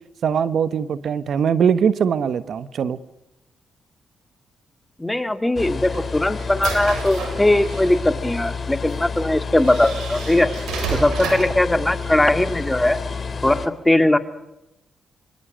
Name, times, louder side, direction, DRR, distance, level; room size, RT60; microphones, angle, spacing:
voice 1, 0.2-3.0, right 7 dB, 65° right, 13 dB, 1.1 m, -21 dB
voice 2, 5.0-10.5 10.9-13.0 13.4-14.2, left 1 dB, 15° left, 8 dB, 2.2 m, -19 dB
sound 1, 5.6-13.7, left 5 dB, 45° left, 3.4 m, -30 dB
sound 2, 5.6-8.0 8.9-9.0 9.6-11.6, right 5 dB, 85° right, 7.2 m, -31 dB
25.5 x 25.0 x 6.3 m, 0.90 s
supercardioid pair, 60°, 0 cm